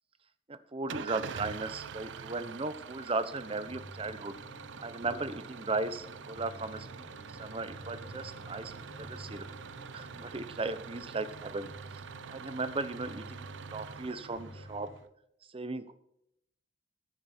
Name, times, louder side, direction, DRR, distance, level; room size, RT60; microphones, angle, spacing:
voice 1, 0.5-4.4 4.8-7.1 7.4-8.7 9.0-9.5 9.9-11.7 12.3-14.9 15.5-15.9, right 3 dB, 30° right, 12 dB, 0.9 m, -36 dB
Engine starting / Idling, 0.9-15.0, right 6 dB, 75° right, 0.5 m, -45 dB
sound 1, 3.4-15.0, equal, 85° left, 3.6 m, -51 dB
15.0 x 9.3 x 4.4 m, 0.76 s
head